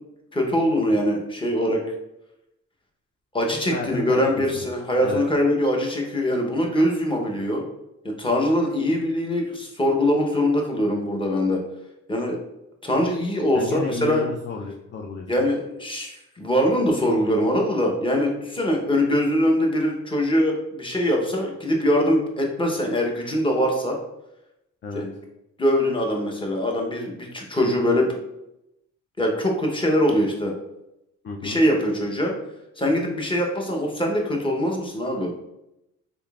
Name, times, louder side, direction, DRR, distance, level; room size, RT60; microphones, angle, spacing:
voice 1, 0.3-1.8 3.3-7.6 8.0-11.6 12.1-12.4 12.8-14.2 15.3-24.0 24.9-25.1 25.6-28.1 29.2-30.5 31.4-32.3 32.8-35.3, equal, 15° left, 1 dB, 0.8 m, -22 dB
voice 2, 3.7-4.7 5.0-5.2 13.5-15.3 24.8-25.0 31.2-31.6, left 4 dB, 35° left, 1 dB, 0.4 m, -32 dB
3.6 x 3.5 x 2.3 m, 0.86 s
cardioid pair, 90°, 30 cm